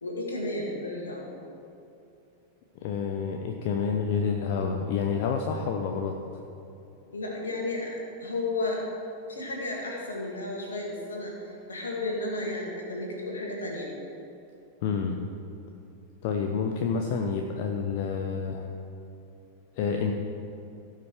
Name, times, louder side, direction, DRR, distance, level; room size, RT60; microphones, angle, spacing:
voice 1, 0.0-1.3 7.1-8.8 9.3-13.9, left 2 dB, 70° left, -1 dB, 2.4 m, -33 dB
voice 2, 2.8-6.1 14.8-15.2 16.2-18.7 19.8-20.1, left 6 dB, 50° left, 4 dB, 0.8 m, -28 dB
17.0 x 5.8 x 4.9 m, 2.8 s
figure-of-eight pair, 90°, 0 cm